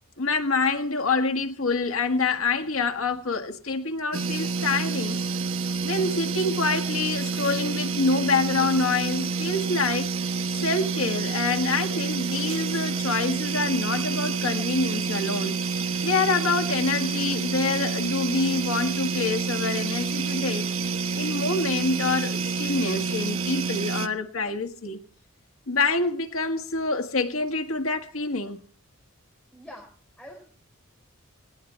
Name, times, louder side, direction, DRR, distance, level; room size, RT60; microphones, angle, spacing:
voice 1, 0.2-5.2 5.8-10.1 10.6-15.6 16.0-20.7 21.1-25.0 25.7-28.6, left 3 dB, 80° left, 1.7 m, -26 dB
sound 1, 4.1-24.1, right 4 dB, 80° right, 1.3 m, -28 dB
voice 2, 29.5-29.9 30.2-30.4, left 1 dB, 5° left, 4.5 m, -43 dB
19.5 x 18.0 x 3.4 m
head